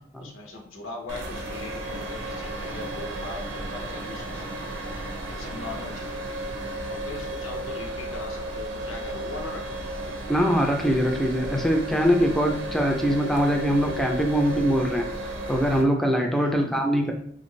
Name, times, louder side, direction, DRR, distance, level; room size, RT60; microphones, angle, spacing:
voice 1, 0.2-6.6 6.9-9.9 16.3-16.8, left 2 dB, 85° left, 2 dB, 0.7 m, -40 dB
sound 1, 1.1-15.8, right 1 dB, 65° right, 0.6 m, -34 dB
voice 2, 10.3-17.1, equal, ahead, 1 dB, 0.3 m, -23 dB
3.2 x 2.5 x 3.0 m, 0.65 s
head